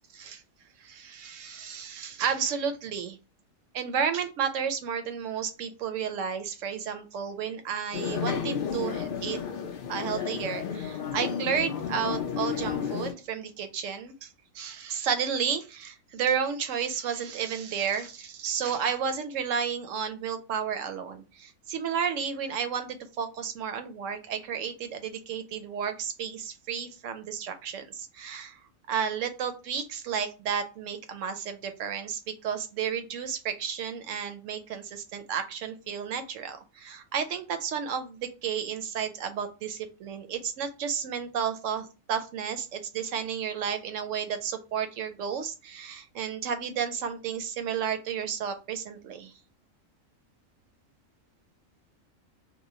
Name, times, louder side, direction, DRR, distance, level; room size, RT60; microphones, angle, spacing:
voice 1, 0.8-3.2 3.7-9.4 9.9-28.6 28.9-49.3, right 7 dB, 70° right, 8 dB, 0.9 m, -32 dB
sound 1, 7.9-13.1, left 7 dB, 65° left, 0.5 m, -32 dB
3.0 x 2.1 x 3.8 m, 0.31 s
omnidirectional pair, 1.4 m